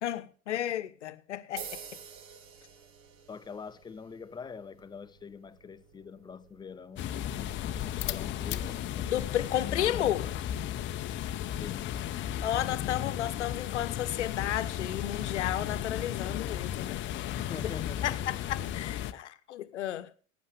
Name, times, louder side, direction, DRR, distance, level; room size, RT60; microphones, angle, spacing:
voice 1, 0.0-2.0 9.1-10.3 12.4-17.0 18.0-20.1, left 12 dB, 60° left, 1.2 m, -33 dB
sound 1, 1.6-9.7, right 7 dB, 35° right, 1.7 m, -51 dB
voice 2, 3.3-10.2 11.6-12.0 17.4-18.4, left 6 dB, 10° left, 0.6 m, -45 dB
sound 2, 7.0-19.1, left 11 dB, 30° left, 0.9 m, -34 dB
20.5 x 9.5 x 3.4 m
figure-of-eight pair, 85°, 39 cm